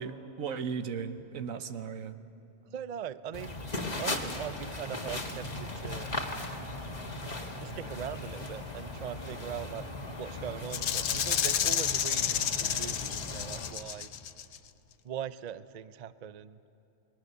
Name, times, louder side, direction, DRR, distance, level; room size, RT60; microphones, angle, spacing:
voice 1, 0.0-2.2, right 6 dB, 85° right, 10 dB, 1.4 m, -36 dB
voice 2, 2.7-3.6 4.0-6.1 7.6-14.1 15.0-16.6, right 9 dB, 50° right, 14 dB, 0.5 m, -41 dB
sound 1, 3.3-13.7, left 2 dB, 30° left, 1.8 m, -38 dB
Rattle (instrument), 10.7-14.6, left 9 dB, 65° left, 1.0 m, -30 dB
29.0 x 21.0 x 6.7 m, 2.8 s
omnidirectional pair, 1.4 m